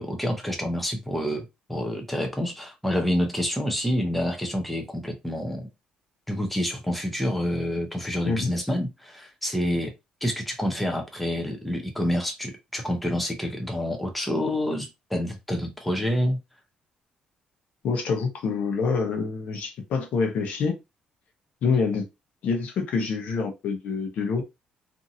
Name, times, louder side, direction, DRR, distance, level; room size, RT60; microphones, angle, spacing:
voice 1, 0.0-5.7 6.3-9.9 10.2-16.4, equal, 5° left, 0.6 m, -28 dB
voice 2, 17.8-20.7 21.6-22.0 22.4-24.4, left 5 dB, 65° left, 0.8 m, -26 dB
2.7 x 2.6 x 2.6 m
cardioid pair, 145°, 3 cm